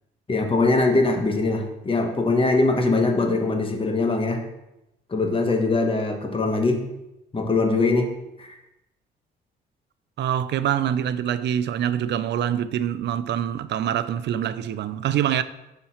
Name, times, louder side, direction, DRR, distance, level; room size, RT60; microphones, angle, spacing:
voice 1, 0.3-4.4 5.1-6.8 7.3-8.1 8.4-8.5, left 3 dB, 25° left, 1.2 m, -22 dB
voice 2, 10.2-15.4, right 10 dB, 60° right, 0.5 m, -25 dB
5.6 x 4.5 x 5.6 m
cardioid pair, 90°, 20 cm